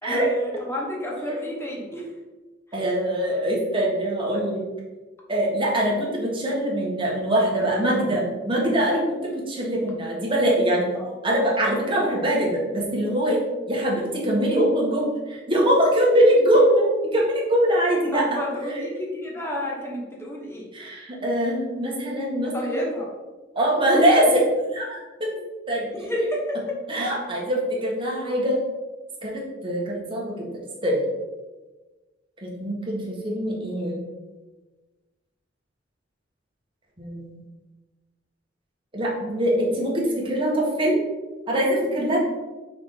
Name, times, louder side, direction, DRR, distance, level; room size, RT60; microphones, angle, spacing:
voice 1, 0.0-2.0 10.9-11.1 18.1-20.7 22.5-23.1 25.9-26.8, left 1 dB, 15° left, -3 dB, 1.3 m, -30 dB
voice 2, 2.7-4.7 5.3-10.9 11.2-13.4 13.7-18.8 20.7-22.8 23.5-24.4 24.7-25.3 25.7-26.1 26.9-28.6 29.2-30.5 30.8-31.0 32.4-34.0 37.0-37.3 38.9-41.1 41.5-42.2, right 1 dB, 25° right, -3 dB, 1.6 m, -23 dB
5.6 x 4.8 x 3.8 m, 1.2 s
head